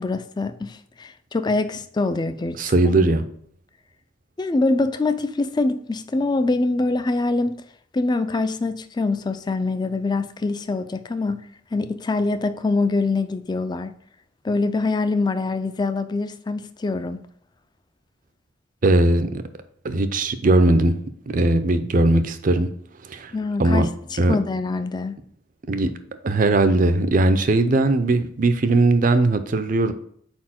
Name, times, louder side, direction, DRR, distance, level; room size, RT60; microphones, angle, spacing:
voice 1, 0.0-2.9 4.4-7.6 7.9-11.4 11.7-13.9 14.4-17.2 23.3-25.1, left 3 dB, 20° left, 0.3 m, -24 dB
voice 2, 2.6-3.2 18.8-19.4 19.8-20.9 21.3-22.7 23.1-23.3 23.6-23.9 24.2-24.4 25.7-25.9 26.2-29.9, right 2 dB, 45° right, 0.5 m, -19 dB
4.5 x 4.4 x 5.8 m
head